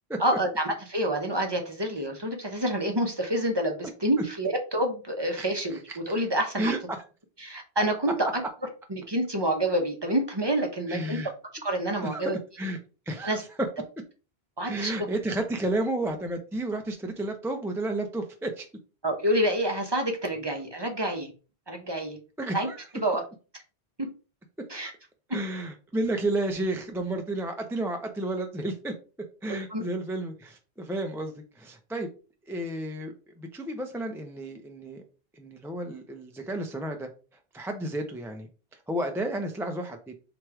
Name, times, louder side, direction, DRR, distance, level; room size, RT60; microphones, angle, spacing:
voice 1, 0.2-5.8 6.1-6.7 7.4-8.4 8.9-11.2 11.6-12.4 13.2-13.4 14.6-14.9 19.0-21.3 21.7-22.2 22.5-22.7 22.9-23.2 24.0-24.1 24.7-24.9 29.5-29.8, right 1 dB, 25° right, 3 dB, 0.7 m, -27 dB
voice 2, 10.9-11.3 12.0-12.2 12.6-12.8 13.1-13.7 14.7-18.7 22.4-22.8 25.3-28.9 29.4-32.1 32.5-35.0 35.4-37.1 37.5-38.5 38.9-40.1, right 1 dB, 5° right, 4 dB, 0.3 m, -31 dB
3.2 x 3.0 x 4.7 m, 0.34 s
omnidirectional pair, 1.1 m